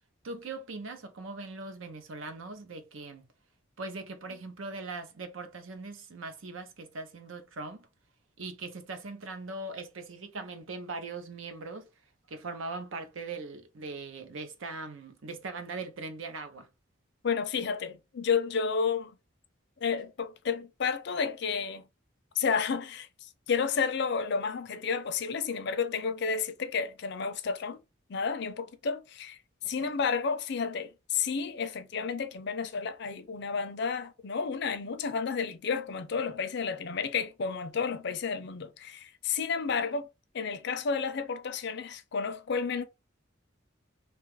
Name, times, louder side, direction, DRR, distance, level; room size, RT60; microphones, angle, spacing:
voice 1, 0.2-3.3 3.8-7.9 8.4-11.9 12.3-16.7 29.6-30.0, right 3 dB, 85° right, 0.7 m, -40 dB
voice 2, 17.2-19.2 19.8-21.8 22.4-27.8 28.1-29.4 29.6-40.1 40.3-42.8, left 5 dB, 60° left, 0.5 m, -31 dB
2.8 x 2.4 x 3.1 m
head